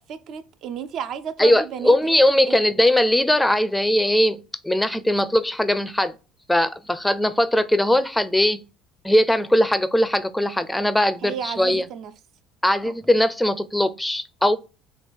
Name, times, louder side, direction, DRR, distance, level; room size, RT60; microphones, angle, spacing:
voice 1, 0.0-1.9 2.5-2.6 11.2-12.1 12.8-12.9, right 8 dB, 60° right, 0.5 m, -33 dB
voice 2, 1.4-6.1 6.5-8.6 9.0-11.8 12.6-14.6, left 1 dB, 5° left, 0.4 m, -20 dB
3.3 x 2.9 x 4.3 m
hypercardioid pair, 70°, 0 cm